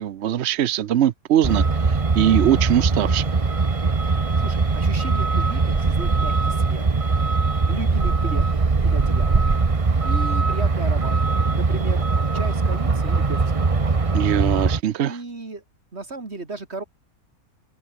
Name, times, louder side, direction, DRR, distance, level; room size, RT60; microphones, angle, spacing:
voice 1, 0.0-3.3 14.1-15.2, right 11 dB, 60° right, 0.8 m, -21 dB
Truck, 1.4-14.8, right 4 dB, 25° right, 1.0 m, -21 dB
voice 2, 4.4-6.8 7.7-8.4 8.8-9.4 10.0-11.2 11.5-12.0 12.3-13.9 15.0-15.6 15.9-16.8, right 3 dB, 45° right, 3.4 m, -34 dB
omnidirectional pair, 1.6 m